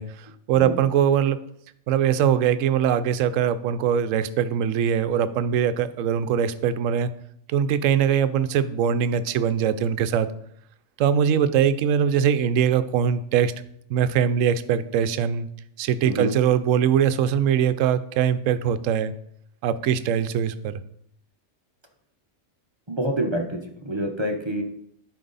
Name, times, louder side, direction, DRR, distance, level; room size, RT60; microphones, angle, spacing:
voice 1, 0.0-1.4 1.9-7.1 7.5-10.3 11.0-13.5 13.9-15.5 15.8-19.1 19.6-20.8, right 8 dB, 70° right, 12 dB, 0.9 m, -22 dB
voice 2, 22.9-24.6, right 1 dB, 25° right, 3 dB, 0.6 m, -27 dB
11.0 x 4.7 x 4.0 m, 0.71 s
omnidirectional pair, 1.5 m